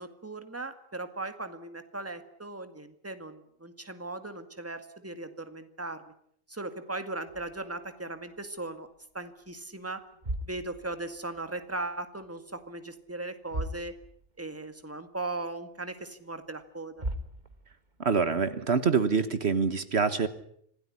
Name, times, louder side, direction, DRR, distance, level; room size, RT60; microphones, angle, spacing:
voice 1, 0.0-6.1 6.5-8.9 9.1-10.0 10.5-14.0 14.4-17.0, right 2 dB, 10° right, 9 dB, 1.9 m, -38 dB
sound 1, 7.3-8.9 9.2-9.5 10.0-11.9 12.1-12.8 13.1-13.2 13.4-14.5 14.8-14.9 15.5-15.6 16.6-16.7 17.0-18.0, right 1 dB, 40° right, 2.1 m, -39 dB
voice 2, 18.0-20.3, right 5 dB, 60° right, 12 dB, 1.6 m, -25 dB
26.5 x 17.0 x 9.8 m, 0.68 s
omnidirectional pair, 1.3 m